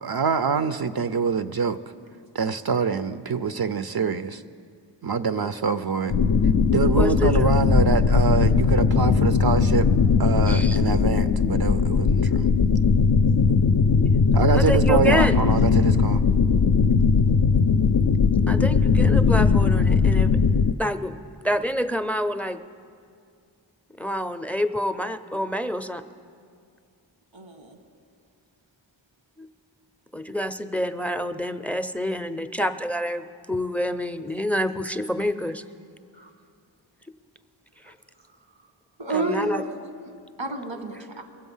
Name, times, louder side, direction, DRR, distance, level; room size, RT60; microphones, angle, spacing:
voice 1, 0.0-1.8 2.3-4.4 5.0-6.1 6.7-9.9 10.2-12.5 14.3-16.2, right 5 dB, 55° right, 11 dB, 0.5 m, -25 dB
sound 1, 6.1-20.7, left 5 dB, 55° left, 0.5 m, -19 dB
voice 2, 7.0-7.5 10.5-10.8 14.4-15.4 18.5-20.4 20.8-22.6 24.0-26.0 29.4-29.5 30.1-35.6 37.8-37.9 39.1-39.6, equal, 5° left, 11 dB, 0.5 m, -27 dB
voice 3, 27.3-27.8 36.1-36.3 37.8-37.9 39.0-39.7 40.4-41.2, right 3 dB, 90° right, 4 dB, 1.5 m, -30 dB
22.5 x 7.7 x 5.5 m, 2.3 s
wide cardioid pair, 40°, 45 cm